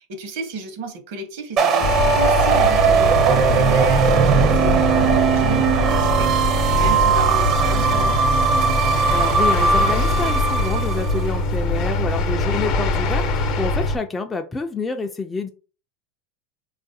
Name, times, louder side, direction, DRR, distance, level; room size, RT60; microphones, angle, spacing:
voice 1, 0.0-8.2, right 3 dB, 70° right, 0.9 m, -32 dB
sound 1, 1.6-11.2, right 6 dB, 45° right, 0.5 m, -19 dB
sound 2, 1.8-14.0, left 2 dB, 60° left, 0.7 m, -23 dB
voice 2, 9.1-15.5, left 4 dB, 15° left, 0.3 m, -28 dB
3.7 x 2.4 x 2.6 m
supercardioid pair, 120°, 0 cm